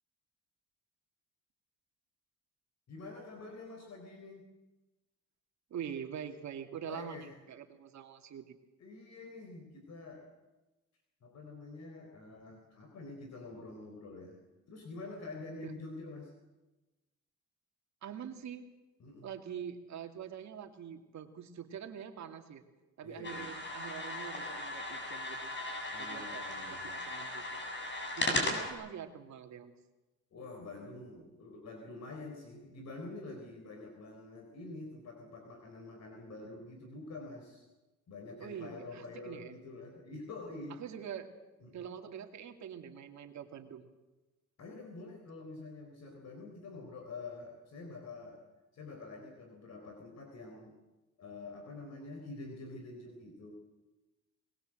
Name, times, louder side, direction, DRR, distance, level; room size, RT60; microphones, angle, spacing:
voice 1, 2.9-4.5 6.9-7.3 8.8-10.3 11.2-14.4 14.7-16.3 19.0-19.3 23.0-23.5 25.9-27.0 30.3-37.6 38.1-40.8 41.6-41.8 44.6-48.4 48.7-50.7 51.2-53.5, left 3 dB, 60° left, 3 dB, 4.3 m, -47 dB
voice 2, 5.7-8.5 15.6-15.7 18.0-18.7 19.2-22.6 23.0-25.5 26.0-27.6 28.2-29.7 38.4-39.5 40.7-41.3 41.7-43.8, right 8 dB, 65° right, 5 dB, 2.6 m, -44 dB
sound 1, 23.2-28.7, left 1 dB, 40° left, 7.5 m, -37 dB
21.5 x 20.5 x 7.8 m, 1.1 s
cardioid pair, 90°, 30 cm